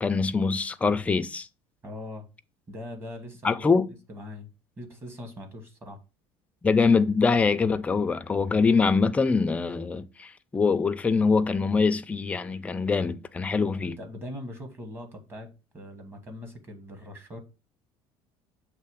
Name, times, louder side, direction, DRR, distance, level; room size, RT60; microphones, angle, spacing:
voice 1, 0.0-1.5 3.4-3.9 6.6-14.0, left 4 dB, 10° left, 0.3 m, -24 dB
voice 2, 1.8-2.3 2.7-3.6 4.1-4.5 4.8-6.0 13.5-17.4, left 1 dB, 20° right, 1.3 m, -41 dB
6.7 x 3.1 x 4.7 m
cardioid pair, 160°, 11 cm